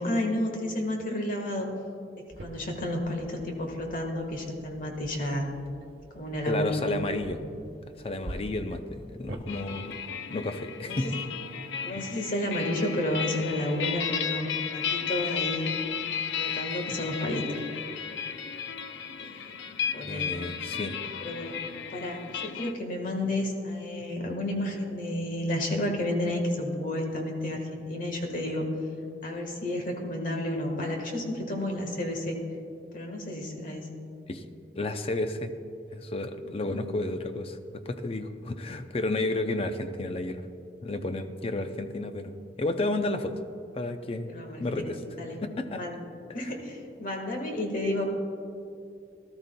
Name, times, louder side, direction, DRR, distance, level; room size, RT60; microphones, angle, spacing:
voice 1, 0.0-1.7 2.4-5.5 6.1-6.8 10.8-11.0 11.8-15.7 16.4-17.4 19.2-19.6 19.9-20.3 21.2-21.6 21.9-28.7 29.2-32.4 32.9-33.9 36.4-36.8 44.3-45.4 45.7-46.0 46.3-48.0, left 1 dB, 50° left, 2 dB, 1.5 m, -31 dB
sound 1, 2.3-9.4, right 1 dB, 65° right, 1.0 m, -46 dB
voice 2, 6.5-7.4 8.0-10.0 10.3-11.2 20.0-21.0 34.3-34.5 34.8-35.5 35.9-40.4 40.8-43.4 43.7-45.0 45.4-45.8 46.4-46.5, left 2 dB, 30° left, 8 dB, 0.5 m, -32 dB
sound 2, 9.5-22.7, left 7 dB, 85° left, 0.5 m, -34 dB
18.0 x 12.5 x 2.2 m, 2.6 s
head